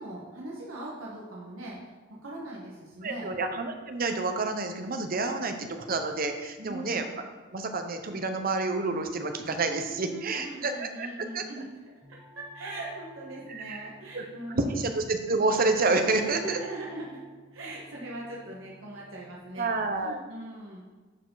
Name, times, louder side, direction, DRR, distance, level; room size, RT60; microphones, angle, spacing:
voice 1, 0.0-1.9 2.2-3.3 6.6-7.0 10.0-11.7 12.1-14.9 16.2-17.2 17.5-19.7 20.0-20.8, right 1 dB, 85° right, -4 dB, 1.5 m, -40 dB
voice 2, 3.0-7.1 7.5-11.1 11.3-11.4 13.5-14.3 14.5-16.6 19.6-20.2, right 3 dB, 45° right, 6 dB, 0.8 m, -29 dB
sound 1, 12.0-19.4, right 2 dB, 5° left, 1.5 m, -54 dB
11.0 x 4.9 x 4.0 m, 1.3 s
head